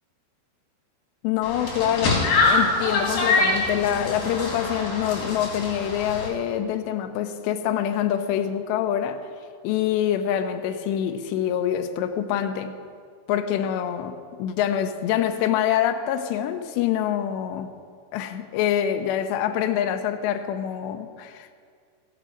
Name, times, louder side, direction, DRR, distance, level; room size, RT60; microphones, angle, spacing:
voice 1, 1.2-9.2 9.6-12.7 13.3-17.7 18.1-21.5, left 10 dB, 85° left, 7 dB, 2.8 m, -25 dB
sound 1, 1.4-6.3, left 3 dB, 55° left, 4.2 m, -24 dB
15.5 x 8.3 x 6.1 m, 2.1 s
omnidirectional pair, 5.0 m